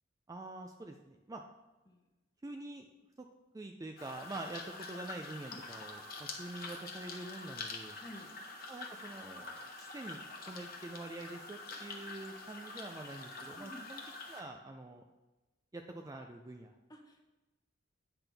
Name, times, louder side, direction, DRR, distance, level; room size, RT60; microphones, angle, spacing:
voice 1, 0.3-1.4 2.4-2.9 3.2-3.3 3.5-8.0 8.7-10.2 10.5-14.0 14.3-15.0 15.7-16.7, right 2 dB, 15° right, 3 dB, 0.3 m, -46 dB
sound 1, 4.0-14.4, left 3 dB, 45° left, 1.0 m, -46 dB
voice 2, 8.0-8.3 13.5-13.9 16.9-17.2, left 1 dB, 20° left, 2 dB, 0.9 m, -51 dB
8.8 x 5.9 x 3.4 m, 1.1 s
head